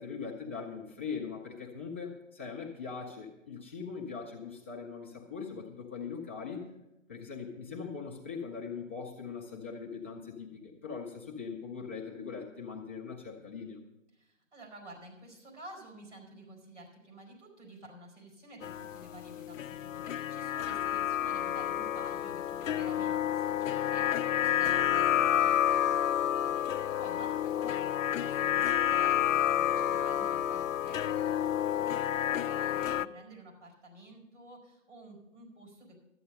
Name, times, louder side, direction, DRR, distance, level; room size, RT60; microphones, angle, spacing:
voice 1, 0.0-6.7 7.1-13.8, left 5 dB, 10° left, -4 dB, 0.5 m, -41 dB
voice 2, 14.1-36.0, right 1 dB, 65° right, 1 dB, 4.6 m, -51 dB
sound 1, 18.6-33.1, left 11 dB, 90° left, 0.5 m, -29 dB
12.5 x 8.5 x 5.3 m, 0.92 s
hypercardioid pair, 155°, 38 cm